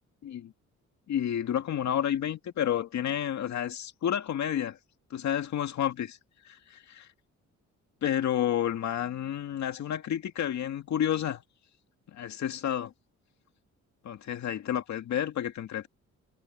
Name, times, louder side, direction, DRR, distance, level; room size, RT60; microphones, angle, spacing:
voice 1, 1.1-4.8 5.1-6.2 6.4-7.1 8.0-11.4 12.1-12.9 14.0-15.9, left 10 dB, 65° left, 2.2 m, -30 dB
cardioid pair, 90°, 30 cm